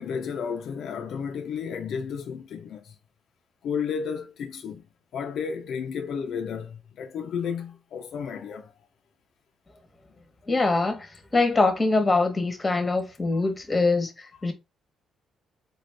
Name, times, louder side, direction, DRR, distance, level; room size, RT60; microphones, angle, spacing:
voice 1, 0.0-2.9 3.6-4.8 5.1-8.7, left 6 dB, 70° left, 0.5 m, -32 dB
voice 2, 10.5-11.1 11.3-14.1 14.4-14.5, left 3 dB, 20° left, 1.0 m, -23 dB
3.9 x 2.5 x 3.3 m
cardioid pair, 90°, 0 cm